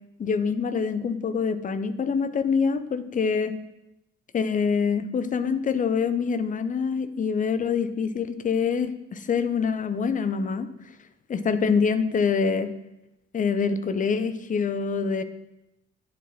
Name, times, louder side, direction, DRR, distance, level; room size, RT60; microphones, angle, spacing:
voice 1, 0.2-3.5 4.3-10.7 11.3-12.7 13.3-15.2, left 5 dB, 20° left, 12 dB, 0.5 m, -25 dB
9.9 x 4.4 x 2.8 m, 0.89 s
figure-of-eight pair, 40°, 40 cm